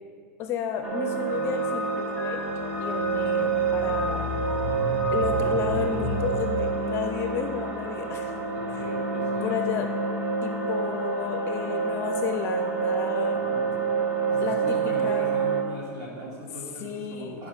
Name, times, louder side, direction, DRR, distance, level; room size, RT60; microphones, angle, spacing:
voice 1, 0.4-2.4 2.8-4.3 5.1-8.4 8.7-8.9 9.4-9.9 10.4-13.4 14.4-14.8 15.0-15.3 16.8-17.4, left 7 dB, 30° left, 6 dB, 0.5 m, -32 dB
sound 1, 0.8-15.6, right 5 dB, 20° right, 0.7 m, -28 dB
sound 2, 1.3-8.6, left 2 dB, 80° right, 2.6 m, -33 dB
voice 2, 8.5-9.6 13.3-13.9 14.3-17.5, equal, 40° right, -3 dB, 2.5 m, -40 dB
9.3 x 5.1 x 6.3 m, 2.1 s
supercardioid pair, 160°, 8 cm